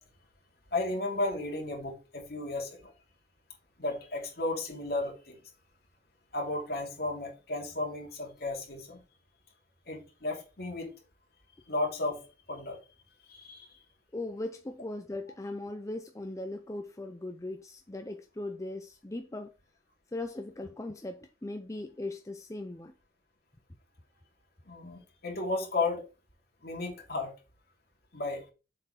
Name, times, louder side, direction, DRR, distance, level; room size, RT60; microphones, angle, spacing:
voice 1, 0.7-2.9 3.8-5.4 6.3-9.0 9.9-10.9 11.7-12.8 13.3-13.7 24.7-26.0 26.6-27.3 28.1-28.4, left 2 dB, 55° left, 2.7 m, -34 dB
voice 2, 14.1-19.5 20.1-22.9, left 2 dB, 15° left, 0.5 m, -39 dB
7.3 x 4.5 x 4.9 m
head